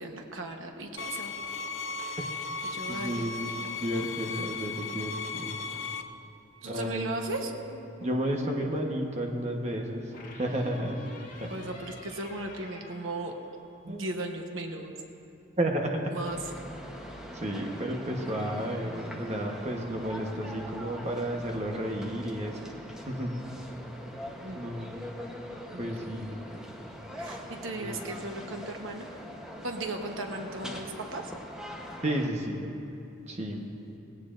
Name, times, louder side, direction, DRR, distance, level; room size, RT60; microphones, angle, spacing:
voice 1, 0.0-1.3 2.0-2.2 2.7-3.7 6.6-7.5 11.5-13.3 13.8-14.9 16.1-16.4 24.4-24.6 25.7-25.9 26.5-26.6 27.2-29.1 29.6-31.3, right 2 dB, 75° right, 3 dB, 1.1 m, -36 dB
sound 1, 1.0-6.0, left 4 dB, 75° left, 0.7 m, -36 dB
voice 2, 2.9-5.6 6.7-7.1 8.0-11.1 11.4-11.5 13.9-14.1 15.6-16.2 17.3-22.7 23.1-23.3 24.5-24.9 25.8-26.4 27.7-28.0 32.0-32.6 33.3-33.7, right 1 dB, 35° right, 1 dB, 1.1 m, -32 dB
sound 2, 7.4-8.3 10.1-13.9, left 1 dB, 40° left, 1.8 m, -47 dB
sound 3, 16.3-32.3, equal, 5° right, 1.0 m, -43 dB
19.5 x 17.0 x 2.6 m, 2.7 s
head